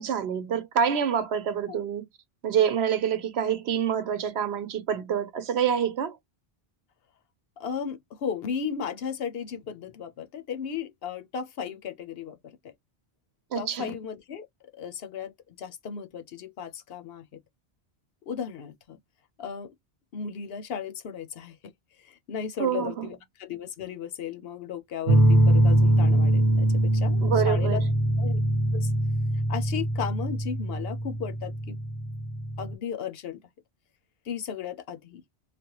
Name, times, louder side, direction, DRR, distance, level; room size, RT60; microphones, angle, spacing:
voice 1, 0.0-2.0 2.4-6.2 13.5-13.9 22.6-23.1 27.2-27.9, right 8 dB, 80° right, 1.0 m, -27 dB
voice 2, 7.6-12.6 13.6-14.5 14.7-17.3 18.3-19.0 19.4-19.7 20.1-21.7 22.0-27.8 28.2-28.4 28.7-28.9 29.5-31.8 32.6-33.4 34.3-35.2, left 7 dB, 70° left, 0.9 m, -35 dB
sound 1, 25.1-32.7, right 1 dB, 45° right, 0.8 m, -23 dB
3.3 x 2.2 x 2.8 m
omnidirectional pair, 1.1 m